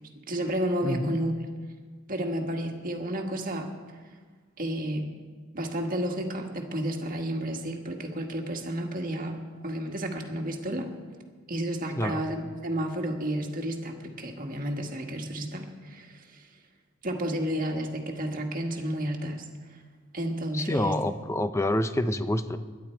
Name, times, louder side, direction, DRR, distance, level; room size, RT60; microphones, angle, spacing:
voice 1, 0.3-1.3 2.1-3.7 4.6-5.1 5.5-10.9 11.5-16.5 17.0-19.4 19.7-19.8 20.1-21.0, right 1 dB, 40° right, 2 dB, 1.7 m, -31 dB
voice 2, 0.8-1.2 12.0-12.2 20.5-22.6, left 1 dB, 15° left, 10 dB, 0.6 m, -27 dB
22.0 x 11.0 x 4.6 m, 1.5 s
head